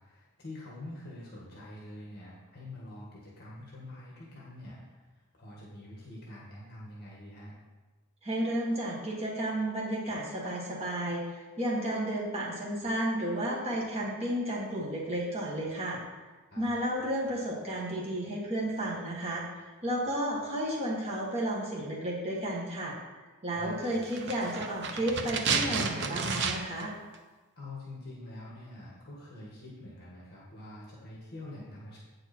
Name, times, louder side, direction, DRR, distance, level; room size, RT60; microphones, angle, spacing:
voice 1, 0.0-7.6 16.5-16.7 23.5-23.9 27.6-32.0, left 1 dB, 45° left, -5 dB, 1.8 m, -46 dB
voice 2, 8.2-16.0 16.6-22.9 23.4-26.9, right 1 dB, 30° right, -5 dB, 1.5 m, -32 dB
sound 1, 24.0-26.9 27.1-27.2, right 5 dB, 50° right, 0.7 m, -31 dB
8.7 x 6.4 x 4.4 m, 1.2 s
head